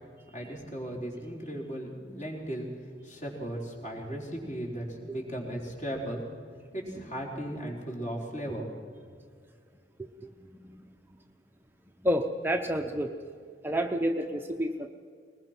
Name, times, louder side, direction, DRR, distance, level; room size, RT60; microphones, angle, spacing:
voice 1, 0.3-2.7 3.0-6.2 6.7-8.7, right 1 dB, 40° left, -1 dB, 4.4 m, -36 dB
voice 2, 10.0-11.2 12.0-13.2 13.6-14.9, equal, 10° right, 4 dB, 0.8 m, -31 dB
21.0 x 20.5 x 6.0 m, 2.1 s
head